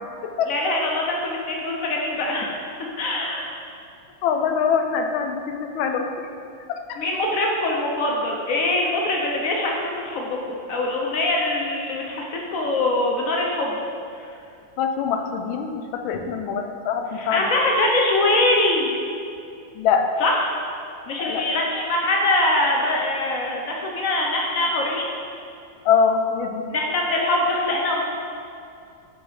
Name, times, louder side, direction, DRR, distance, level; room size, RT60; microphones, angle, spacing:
voice 1, 0.5-2.5 3.0-3.6 7.0-13.8 14.1-14.3 17.1-18.9 20.2-20.3 21.1-25.1 26.7-28.0, left 2 dB, 65° left, -1 dB, 0.8 m, -23 dB
voice 2, 4.2-6.1 6.7-7.0 14.8-17.5 19.7-20.1 21.2-21.4 25.8-26.6, left 6 dB, 85° left, 5 dB, 1.4 m, -23 dB
6.3 x 3.9 x 4.7 m, 2.5 s
omnidirectional pair, 2.1 m